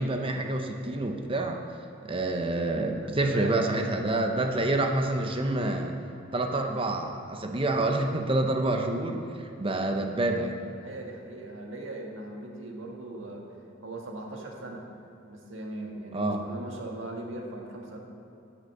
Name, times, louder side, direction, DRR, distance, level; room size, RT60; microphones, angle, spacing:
voice 1, 0.0-1.6 2.0-5.9 6.3-10.6 16.1-16.4, right 2 dB, 25° right, 4 dB, 0.8 m, -28 dB
voice 2, 3.0-3.5 10.8-13.4 13.8-14.8 15.3-18.0, right 2 dB, 75° right, 0 dB, 1.5 m, -39 dB
8.0 x 8.0 x 6.6 m, 2.6 s
head